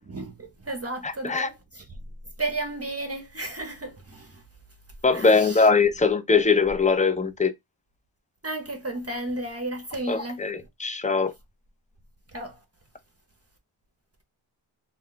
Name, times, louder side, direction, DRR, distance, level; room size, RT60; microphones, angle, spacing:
voice 1, 0.0-1.9 2.4-4.4 5.1-5.7 8.4-10.7 12.3-12.6, right 2 dB, 30° right, 0.7 m, -33 dB
voice 2, 5.0-7.5 10.1-11.3, left 4 dB, 15° left, 0.4 m, -21 dB
2.3 x 2.2 x 3.7 m
cardioid pair, 40°, 48 cm